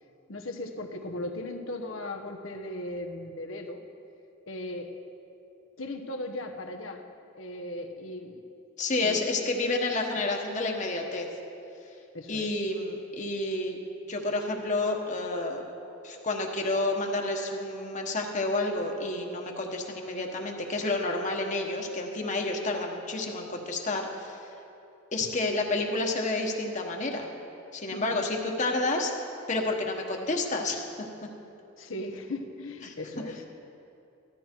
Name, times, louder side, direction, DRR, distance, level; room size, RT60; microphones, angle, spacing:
voice 1, 0.3-3.8 4.5-4.9 5.8-7.0 7.4-8.4 9.0-9.2 12.1-12.5 27.9-28.2 31.8-33.4, left 1 dB, 85° left, 5 dB, 1.2 m, -37 dB
voice 2, 8.8-11.3 12.3-13.8 14.1-15.6 16.0-24.5 25.1-27.3 27.7-29.1 29.5-31.1 32.8-32.9, left 2 dB, 40° left, 1 dB, 1.2 m, -30 dB
14.5 x 12.5 x 4.5 m, 2.8 s
head